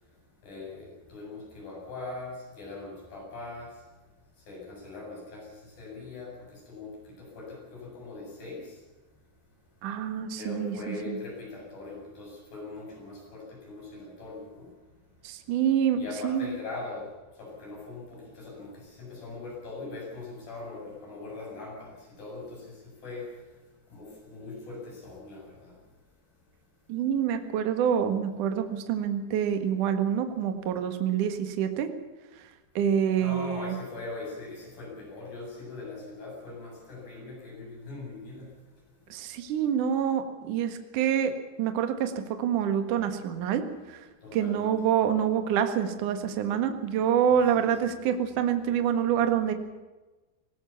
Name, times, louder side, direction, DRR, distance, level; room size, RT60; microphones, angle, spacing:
voice 1, 0.4-3.7 4.5-6.9 7.2-8.6 10.3-14.7 16.0-17.1 17.4-23.3 23.9-25.7 33.2-38.5 44.2-44.7 47.3-47.8, left 3 dB, 55° left, -2 dB, 9.5 m, -41 dB
voice 2, 9.8-11.2 15.2-16.0 16.2-16.5 26.9-31.9 32.8-33.7 39.1-41.3 41.6-43.6 43.9-44.0 44.3-49.5, right 9 dB, 55° right, 8 dB, 2.7 m, -26 dB
19.5 x 18.5 x 7.3 m, 1.2 s
omnidirectional pair, 5.1 m